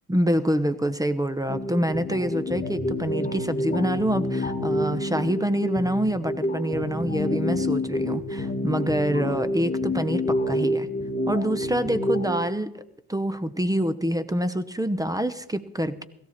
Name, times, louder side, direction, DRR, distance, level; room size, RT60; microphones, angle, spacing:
voice 1, 0.1-10.9 11.3-12.8 13.1-16.0, equal, 10° right, 13 dB, 0.8 m, -26 dB
sound 1, 1.5-12.5, left 1 dB, 20° left, 1.5 m, -28 dB
16.5 x 14.5 x 4.4 m, 0.82 s
supercardioid pair, 70°, 42 cm